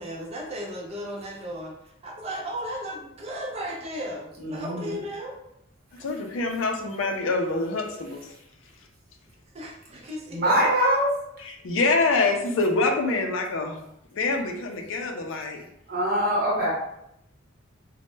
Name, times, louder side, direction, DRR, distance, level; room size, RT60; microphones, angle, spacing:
voice 1, 0.0-5.4 9.5-10.7, equal, 30° right, -1 dB, 0.5 m, -35 dB
voice 2, 4.4-5.0 10.3-11.1 15.9-16.7, equal, 50° right, -4 dB, 0.8 m, -23 dB
voice 3, 6.0-8.2 11.4-13.8 14.1-15.7, left 3 dB, 70° left, 3 dB, 0.4 m, -25 dB
2.1 x 2.1 x 3.1 m, 0.78 s
head